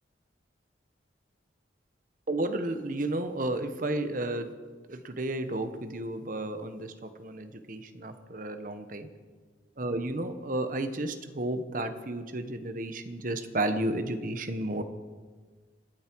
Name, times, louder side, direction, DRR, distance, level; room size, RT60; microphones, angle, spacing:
voice 1, 2.3-4.5 4.9-9.1 9.8-14.8, right 1 dB, 45° right, 9 dB, 1.0 m, -32 dB
25.0 x 9.5 x 4.6 m, 1.4 s
head